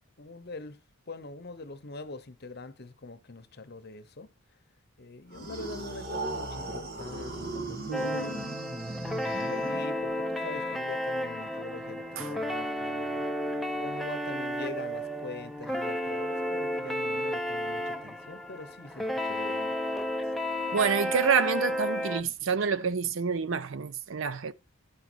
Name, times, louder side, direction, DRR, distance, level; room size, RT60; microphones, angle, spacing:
voice 1, 0.2-0.8 1.1-4.3 5.0-8.5 9.4-13.3 13.8-19.8, left 3 dB, 50° left, 0.9 m, -43 dB
sound 1, 5.3-10.1, right 2 dB, 45° right, 1.6 m, -37 dB
sound 2, 7.9-22.2, equal, ahead, 0.7 m, -32 dB
voice 2, 20.7-24.5, right 5 dB, 60° right, 0.6 m, -27 dB
10.5 x 5.2 x 6.1 m
head